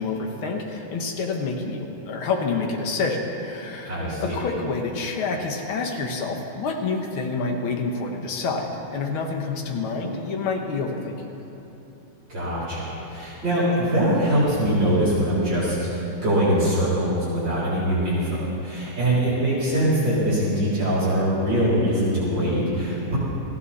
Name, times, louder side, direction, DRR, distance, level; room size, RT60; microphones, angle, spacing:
voice 1, 0.0-11.3, left 4 dB, 75° left, 2 dB, 2.2 m, -28 dB
voice 2, 3.9-4.4 12.3-23.2, right 1 dB, 55° right, -10 dB, 4.3 m, -23 dB
19.0 x 15.0 x 4.2 m, 3.0 s
omnidirectional pair, 2.3 m